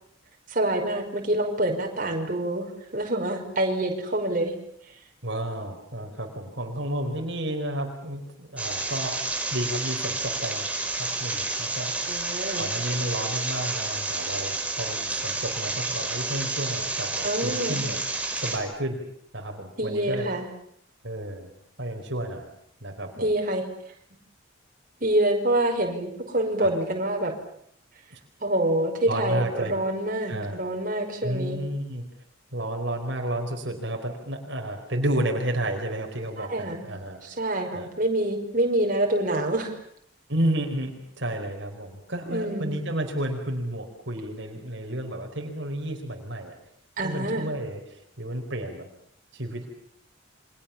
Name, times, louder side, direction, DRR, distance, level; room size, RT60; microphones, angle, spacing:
voice 1, 0.5-4.5 12.1-12.7 17.2-17.8 19.8-20.5 23.2-23.6 25.0-27.3 28.4-31.6 36.4-36.9 37.2-39.7 42.3-42.8 47.0-47.5, right 1 dB, 40° right, 2 dB, 5.3 m, -26 dB
voice 2, 5.2-9.2 9.5-10.6 11.0-12.3 12.6-18.0 18.3-19.0 19.3-20.4 21.0-21.5 21.8-22.5 22.8-23.3 26.6-26.7 28.1-28.2 29.1-29.7 30.3-30.6 31.2-32.0 32.5-37.2 37.7-37.9 40.3-46.5 47.0-48.9 49.3-49.7, right 1 dB, 60° right, 3 dB, 4.6 m, -31 dB
sound 1, 8.6-18.6, right 3 dB, 5° right, 4.6 m, -30 dB
29.5 x 25.5 x 7.2 m, 0.67 s
head